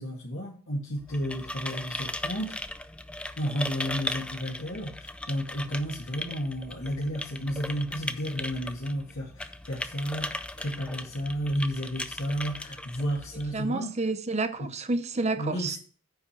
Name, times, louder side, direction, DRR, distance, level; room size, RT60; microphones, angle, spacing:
voice 1, 0.0-2.6 3.4-13.9 14.6-14.7 15.4-15.8, equal, 55° left, 2.4 m, -32 dB
sound 1, 1.0-13.7, left 1 dB, 5° left, 0.3 m, -38 dB
voice 2, 13.5-15.8, right 3 dB, 30° right, 0.7 m, -29 dB
9.3 x 5.0 x 5.9 m
head